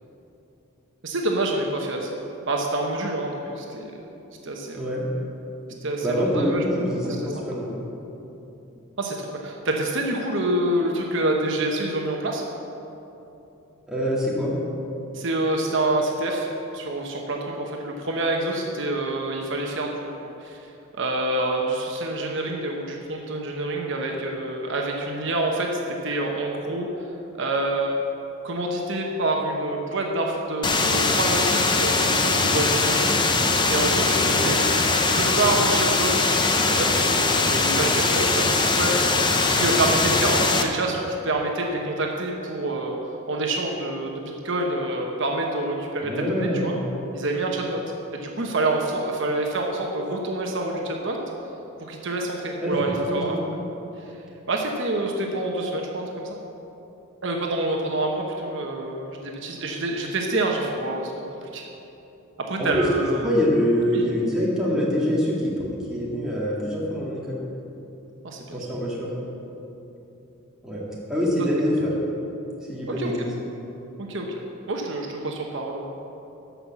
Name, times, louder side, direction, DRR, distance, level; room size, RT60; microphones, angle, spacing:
voice 1, 1.0-2.2 2.5-3.9 4.4-4.8 5.8-7.2 9.0-12.4 15.1-16.5 16.7-20.1 20.4-20.7 21.0-28.0 28.4-33.2 33.7-34.6 35.0-43.0 43.3-46.8 47.1-47.8 48.2-51.2 51.8-53.4 54.0-54.1 54.5-56.4 57.2-61.1 61.4-61.6 62.5-63.3 63.9-64.0 68.2-68.6 73.0-73.1 74.0-74.3 74.7-75.9, right 2 dB, 60° right, 0 dB, 1.0 m, -27 dB
voice 2, 6.0-7.7 13.9-14.5 34.1-34.5 46.0-46.7 52.6-53.4 62.6-67.4 68.5-69.1 70.6-70.8 71.1-71.9 72.7-73.3, equal, 5° right, -6 dB, 2.2 m, -25 dB
sound 1, 30.6-40.6, left 3 dB, 20° left, 0.6 m, -21 dB
13.0 x 5.7 x 7.2 m, 3.0 s
head